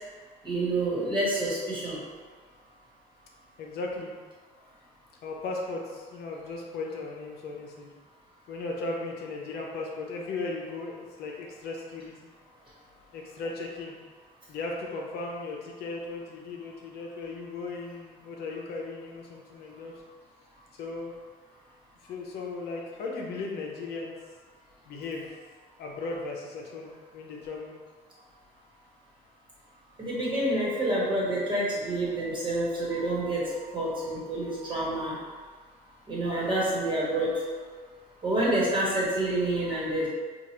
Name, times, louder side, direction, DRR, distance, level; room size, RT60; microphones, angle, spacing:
voice 1, 0.4-2.0 30.0-35.2 36.1-37.4 38.2-40.1, right 1 dB, 30° right, -6 dB, 1.3 m, -28 dB
voice 2, 3.6-4.1 5.2-7.9 8.5-12.1 13.1-14.0 14.5-19.9 20.7-21.1 22.1-24.1 24.9-25.3 25.8-27.7, left 3 dB, 70° left, -1 dB, 0.7 m, -36 dB
4.6 x 2.4 x 2.9 m, 1.6 s
cardioid pair, 110°, 17 cm